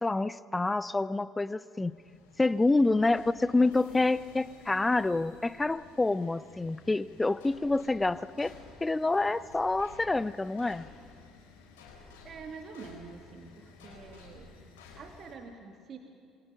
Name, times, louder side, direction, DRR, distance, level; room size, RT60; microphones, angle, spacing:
voice 1, 0.0-1.9 2.4-8.5 8.8-10.9, left 2 dB, 15° left, 17 dB, 0.7 m, -27 dB
sound 1, 1.8-15.3, left 4 dB, 75° left, 4.2 m, -54 dB
voice 2, 12.2-14.5 15.0-16.0, right 4 dB, 45° right, 3 dB, 2.4 m, -46 dB
27.0 x 23.5 x 5.7 m, 2.4 s
figure-of-eight pair, 55°, 0 cm